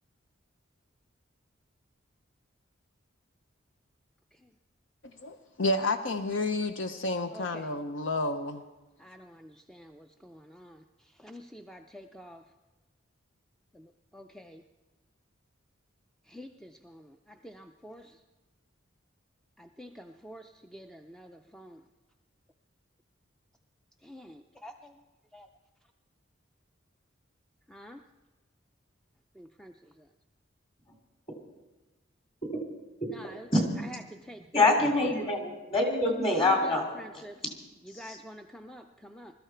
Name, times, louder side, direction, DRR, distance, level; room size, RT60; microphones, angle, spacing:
voice 1, 5.2-8.6, left 2 dB, 65° left, 9 dB, 0.7 m, -30 dB
voice 2, 9.0-10.8 11.2-12.4 14.1-14.6 16.3-16.7 17.4-18.0 19.6-21.8 24.1-24.7 25.3-25.5 27.7-28.0 29.4-29.7 33.1-33.5 34.3-34.4 36.3-37.3 38.0-39.3, equal, 5° left, 5 dB, 0.4 m, -47 dB
voice 3, 34.5-36.9, left 2 dB, 25° left, 2 dB, 2.6 m, -25 dB
20.5 x 13.0 x 4.5 m, 1.2 s
head